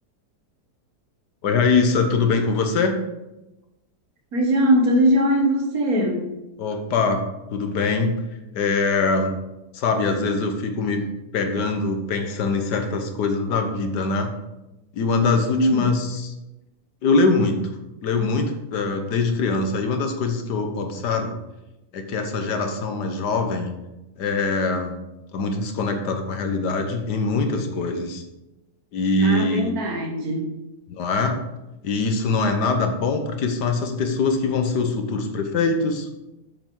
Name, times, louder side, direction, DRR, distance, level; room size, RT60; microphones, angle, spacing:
voice 1, 1.4-3.0 6.6-7.2 7.5-8.1 8.5-9.3 9.7-11.1 11.3-14.3 14.9-16.3 17.0-17.6 18.0-21.4 21.9-23.7 24.2-25.0 25.3-28.2 28.9-29.7 31.0-31.4 31.8-36.2, left 3 dB, 90° left, 5 dB, 1.6 m, -23 dB
voice 2, 4.3-6.3 15.5-15.9 29.2-30.5, equal, 65° right, 2 dB, 1.8 m, -21 dB
7.5 x 7.3 x 3.8 m, 0.97 s
omnidirectional pair, 1.7 m